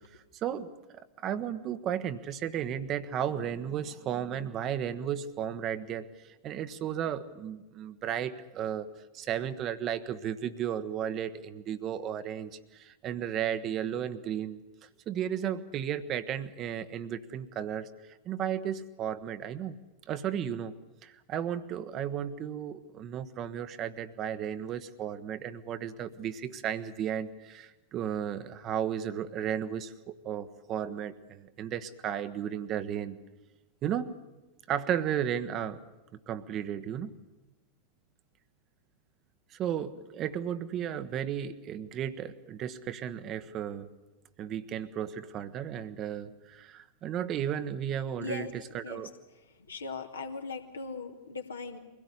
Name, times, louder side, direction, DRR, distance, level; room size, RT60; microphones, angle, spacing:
voice 1, 0.4-0.7 1.2-6.1 6.4-8.9 9.1-14.6 15.1-17.9 18.3-19.8 20.1-20.7 21.0-33.2 33.8-34.2 34.7-35.8 36.3-37.1 39.6-43.9 44.4-49.1, right 9 dB, 35° right, 12 dB, 1.1 m, -34 dB
voice 2, 48.2-48.5 48.8-51.8, left 4 dB, 75° left, 4 dB, 2.4 m, -39 dB
23.5 x 17.0 x 9.9 m, 1.1 s
figure-of-eight pair, 90°, 0 cm